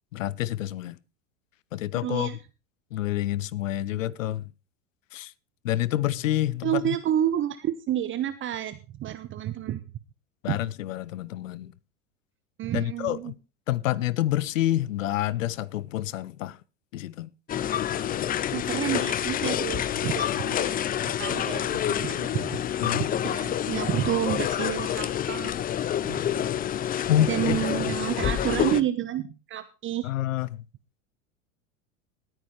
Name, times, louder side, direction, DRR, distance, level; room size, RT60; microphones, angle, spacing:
voice 1, 0.1-1.0 1.7-2.4 2.9-4.5 5.1-5.3 5.6-7.0 10.4-11.7 12.7-13.4 13.7-16.6 16.9-17.3 22.8-23.1 27.1-27.6 30.0-30.6, left 13 dB, 75° left, 0.8 m, -28 dB
voice 2, 2.0-2.4 6.6-9.8 10.5-10.6 12.6-13.3 18.5-20.7 21.0-25.5 26.0-26.5 27.3-30.1, right 11 dB, 30° right, 0.9 m, -30 dB
sound 1, 17.5-28.8, left 10 dB, 25° left, 0.6 m, -28 dB
19.0 x 9.1 x 3.2 m
hypercardioid pair, 95°, 39 cm